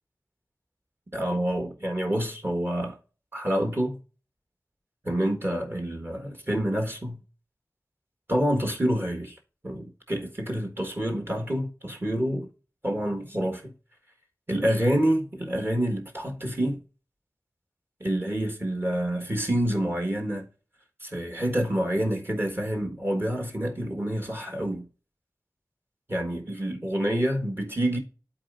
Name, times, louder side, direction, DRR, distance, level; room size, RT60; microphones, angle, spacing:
voice 1, 1.1-3.0 3.3-4.0 5.0-7.2 8.3-9.4 9.6-12.5 12.8-13.7 14.5-16.8 18.0-20.5 21.0-24.9 26.1-28.0, right 1 dB, 35° right, 1.5 m, -27 dB
12.0 x 4.1 x 2.5 m
wide cardioid pair, 70°, 7 cm